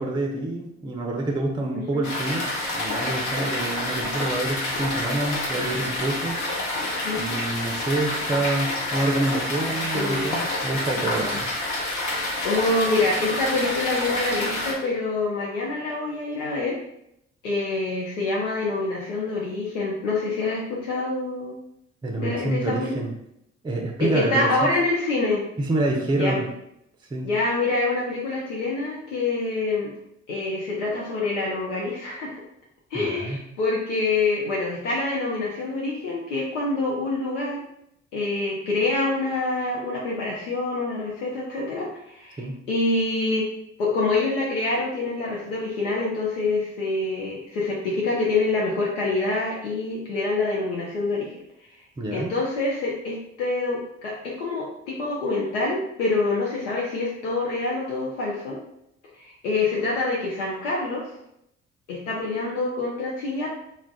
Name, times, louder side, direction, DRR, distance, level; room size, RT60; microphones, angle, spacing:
voice 1, 0.0-2.5 2.7-6.4 7.2-11.5 22.0-23.1 23.6-24.7 25.6-26.5 27.1-27.3 32.9-33.4 42.4-42.6 52.0-52.3, right 2 dB, 15° right, 1 dB, 0.5 m, -27 dB
sound 1, 2.0-14.7, left 1 dB, 55° left, 0.9 m, -28 dB
voice 2, 7.0-7.4 9.9-10.3 12.4-16.8 17.4-21.5 22.2-23.0 24.0-25.4 26.2-26.4 27.2-29.9 30.3-32.4 32.9-37.6 38.1-43.5 43.8-51.4 52.1-58.6 59.2-61.1 61.9-63.5, left 3 dB, 80° left, -4 dB, 0.5 m, -26 dB
2.3 x 2.1 x 3.6 m, 0.78 s
figure-of-eight pair, 45°, 36 cm